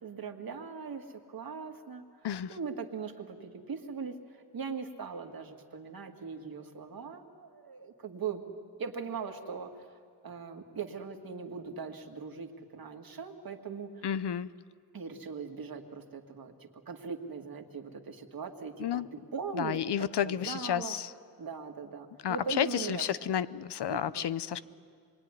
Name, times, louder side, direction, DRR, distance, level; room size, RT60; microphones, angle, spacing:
voice 1, 0.0-2.1 2.5-8.4 8.8-9.9 10.2-14.1 14.9-19.0 19.3-21.0 21.4-23.3 23.9-24.6, right 5 dB, 60° right, 4 dB, 2.1 m, -40 dB
voice 2, 2.2-2.6 14.0-14.5 18.8-19.1 19.5-21.1 22.2-24.6, left 9 dB, 80° left, 16 dB, 0.8 m, -31 dB
26.5 x 23.0 x 9.8 m, 2.1 s
wide cardioid pair, 160°, 40 cm